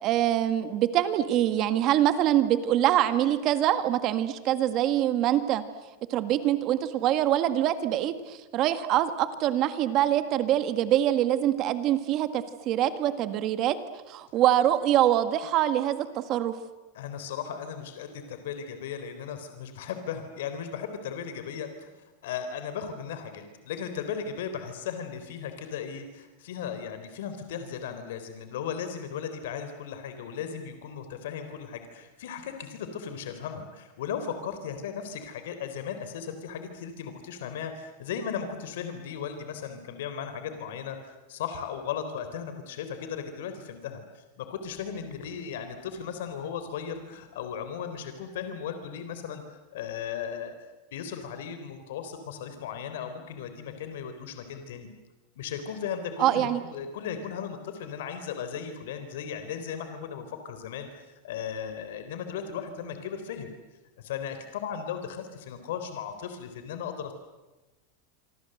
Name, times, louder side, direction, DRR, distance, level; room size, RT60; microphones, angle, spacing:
voice 1, 0.0-5.6 6.1-13.8 14.1-16.5 56.2-56.6, right 12 dB, 35° right, 11 dB, 1.7 m, -24 dB
voice 2, 16.9-21.9 22.2-50.5 50.9-54.9 55.4-63.6 64.0-67.1, left 7 dB, 75° left, 8 dB, 3.6 m, -36 dB
26.0 x 26.0 x 7.9 m, 1.1 s
supercardioid pair, 165°, 0 cm